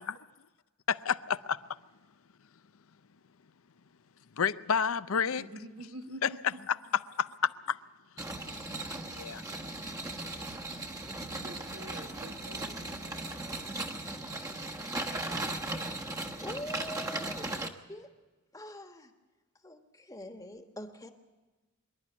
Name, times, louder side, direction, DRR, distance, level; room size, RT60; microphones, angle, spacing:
voice 1, 0.9-1.6 4.4-5.4 6.2-6.3 7.2-7.8 8.5-8.8 9.1-9.4, left 7 dB, 75° left, 0.6 m, -30 dB
voice 2, 5.3-6.6 11.4-13.3, right 1 dB, 85° right, 1.8 m, -47 dB
sound 1, 8.2-17.7, right 2 dB, 15° right, 1.1 m, -37 dB
voice 3, 16.4-18.1 18.5-19.1 19.6-21.1, left 1 dB, 15° left, 1.3 m, -44 dB
24.5 x 11.5 x 9.7 m
head